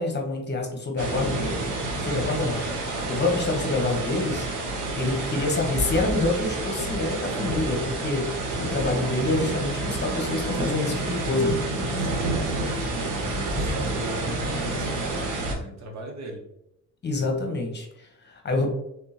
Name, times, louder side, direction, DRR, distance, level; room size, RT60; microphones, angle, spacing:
voice 1, 0.0-1.6 2.0-2.6 3.1-4.5 4.7-11.6 17.0-18.7, left 2 dB, 35° left, 2 dB, 1.1 m, -27 dB
sound 1, 1.0-15.5, right 2 dB, 85° right, 1.1 m, -29 dB
voice 2, 11.9-12.5 13.0-16.4, right 1 dB, 65° right, 2 dB, 1.1 m, -39 dB
3.6 x 3.5 x 2.9 m, 0.80 s
cardioid pair, 90°, 30 cm